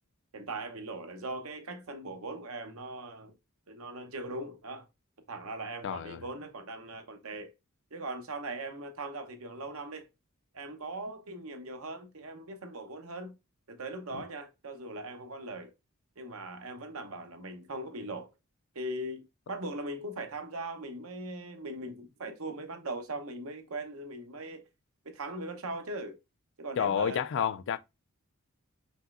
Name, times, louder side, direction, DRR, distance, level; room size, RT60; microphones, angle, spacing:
voice 1, 0.3-3.3 3.7-4.9 5.3-7.5 7.9-10.1 10.5-13.3 13.7-15.7 16.2-18.3 18.7-24.7 25.0-26.2 26.6-27.5, right 2 dB, 70° right, 0.9 m, -40 dB
voice 2, 5.8-6.2 14.1-14.2 26.8-27.8, left 8 dB, 60° left, 0.3 m, -30 dB
5.3 x 3.1 x 2.5 m
head